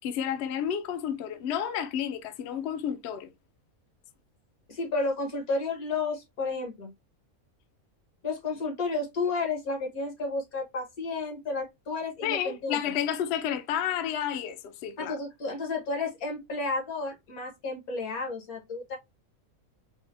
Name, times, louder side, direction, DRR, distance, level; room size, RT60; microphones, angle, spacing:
voice 1, 0.0-3.3 12.2-15.2, left 9 dB, 65° left, 0.6 m, -31 dB
voice 2, 4.7-6.9 8.2-12.9 15.0-19.0, left 3 dB, 85° left, 1.8 m, -32 dB
4.7 x 2.1 x 2.5 m
omnidirectional pair, 1.5 m